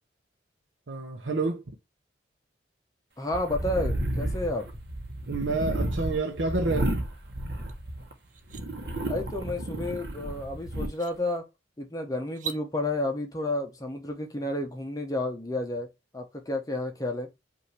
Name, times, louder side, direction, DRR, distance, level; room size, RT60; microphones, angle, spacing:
voice 1, 0.9-1.6 5.3-6.9, right 3 dB, 90° right, 0.8 m, -29 dB
voice 2, 3.2-4.7 9.1-11.4 11.8-15.9 16.1-17.3, left 2 dB, 20° left, 0.8 m, -31 dB
sound 1, 3.3-8.1 8.5-10.9, right 1 dB, 60° right, 1.0 m, -32 dB
sound 2, 7.7-7.8 8.2-8.6 10.3-10.4 10.9-11.2 12.3-12.6, right 8 dB, 45° right, 0.5 m, -39 dB
5.3 x 2.6 x 3.2 m
head